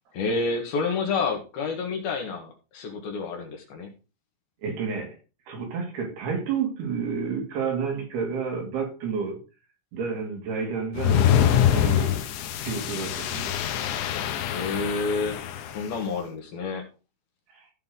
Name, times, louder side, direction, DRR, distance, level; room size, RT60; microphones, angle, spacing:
voice 1, 0.1-3.9 14.5-15.4 15.7-16.8, left 4 dB, 60° left, 3.3 m, -29 dB
voice 2, 4.6-5.2 5.5-9.4 9.9-12.2 12.6-13.6 17.5-17.7, right 5 dB, 65° right, 4.3 m, -30 dB
sound 1, 11.0-15.9, left 10 dB, 85° left, 3.3 m, -24 dB
15.5 x 5.5 x 3.9 m
omnidirectional pair, 5.1 m